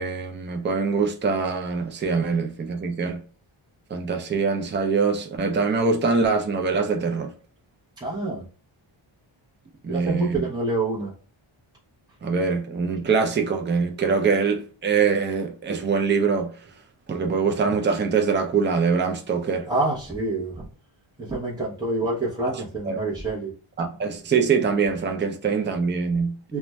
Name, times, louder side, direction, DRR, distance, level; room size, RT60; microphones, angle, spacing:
voice 1, 0.0-3.2 3.9-7.3 9.8-10.5 12.2-16.5 17.1-19.7 22.4-23.0 23.8-26.3, right 5 dB, 25° right, 0.4 m, -23 dB
voice 2, 8.0-8.4 9.9-11.1 19.7-20.7 21.2-23.5 26.5-26.6, right 2 dB, 10° right, 0.8 m, -27 dB
2.4 x 2.2 x 3.1 m
wide cardioid pair, 125°, 50 cm